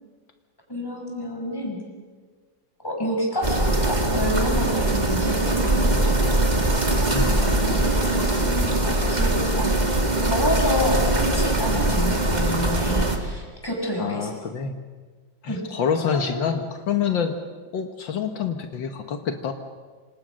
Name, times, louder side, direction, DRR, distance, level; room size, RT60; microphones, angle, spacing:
voice 1, 0.7-1.8 2.8-6.2 7.6-8.0 8.4-9.9 10.2-14.3 15.5-15.6 16.1-16.5, left 1 dB, 10° left, -1 dB, 6.3 m, -29 dB
sound 1, 3.4-13.2, right 2 dB, 20° right, 2.3 m, -22 dB
voice 2, 7.1-7.9 14.0-14.8 15.4-17.3 17.7-19.5, left 7 dB, 75° left, 6 dB, 2.0 m, -27 dB
26.5 x 26.5 x 6.4 m, 1.5 s
omnidirectional pair, 2.1 m